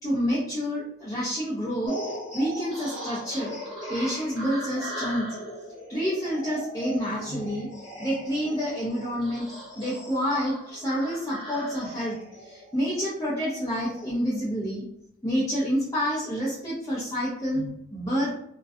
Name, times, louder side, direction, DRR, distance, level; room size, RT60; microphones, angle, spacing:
voice 1, 0.0-2.0 2.3-3.6 3.9-5.4 5.9-7.7 8.0-14.8 15.2-18.3, equal, 20° left, -9 dB, 0.5 m, -28 dB
sound 1, 1.9-14.1, equal, 25° right, 1.3 m, -39 dB
2.6 x 2.2 x 2.3 m, 0.75 s
head